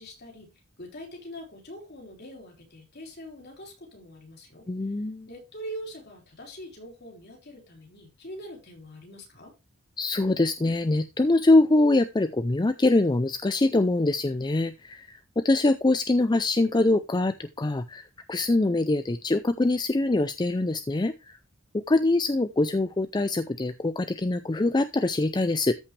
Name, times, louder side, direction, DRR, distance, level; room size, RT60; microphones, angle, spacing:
voice 1, 0.0-4.7 5.3-9.5, equal, 50° left, 4.4 m, -43 dB
voice 2, 4.7-5.3 10.0-21.4 21.7-25.7, left 2 dB, 20° left, 0.5 m, -24 dB
13.5 x 5.6 x 3.3 m
head